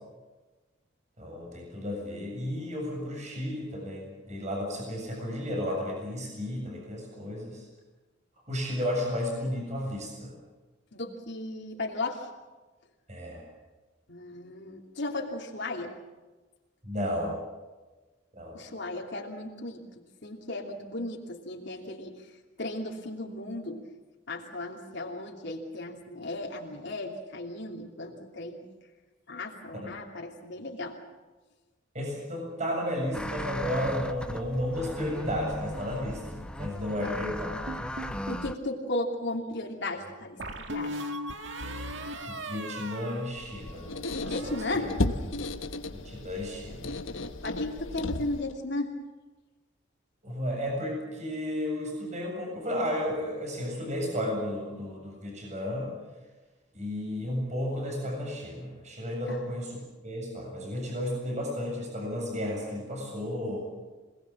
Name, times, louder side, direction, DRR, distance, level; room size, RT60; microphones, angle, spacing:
voice 1, 1.2-7.6 8.5-10.3 13.1-13.4 16.8-17.4 18.3-18.6 29.8-29.9 31.9-37.5 42.3-44.9 45.9-46.9 50.2-55.9 56.7-59.8 60.0-63.7, left 1 dB, 40° right, 0 dB, 7.5 m, -33 dB
voice 2, 10.9-12.3 14.1-16.0 18.5-23.9 24.3-28.6 29.3-31.0 37.0-37.1 38.3-41.0 44.3-45.2 47.4-49.0 59.3-59.4, left 2 dB, 65° left, 0 dB, 2.9 m, -35 dB
sound 1, 33.1-38.6, left 1 dB, 5° left, 0.9 m, -37 dB
sound 2, 37.7-38.5 40.4-43.9 44.2-44.7, right 1 dB, 70° right, 2.0 m, -38 dB
Squeak, 43.3-48.6, left 2 dB, 90° left, 1.4 m, -34 dB
27.0 x 19.5 x 7.4 m, 1.2 s
head